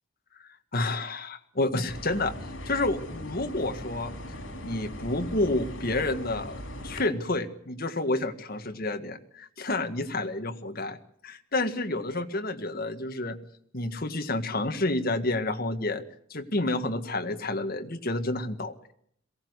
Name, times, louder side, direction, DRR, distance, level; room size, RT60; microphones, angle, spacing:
voice 1, 0.7-2.3 2.7-4.1 4.6-11.0 11.2-13.4 13.7-16.0 16.3-18.7, left 2 dB, 50° left, 6 dB, 1.8 m, -29 dB
sound 1, 1.9-7.0, left 1 dB, 70° left, 4.7 m, -39 dB
22.5 x 17.5 x 8.1 m, 0.68 s
head